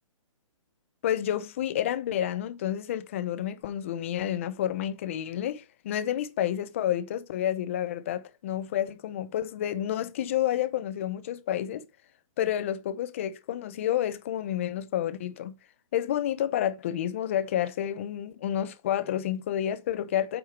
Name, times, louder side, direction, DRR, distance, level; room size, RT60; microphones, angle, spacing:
voice 1, 1.0-11.9 12.4-15.6 15.9-20.4, left 11 dB, 25° left, 0.7 m, -30 dB
9.0 x 6.3 x 4.5 m
hypercardioid pair, 175°, 17 cm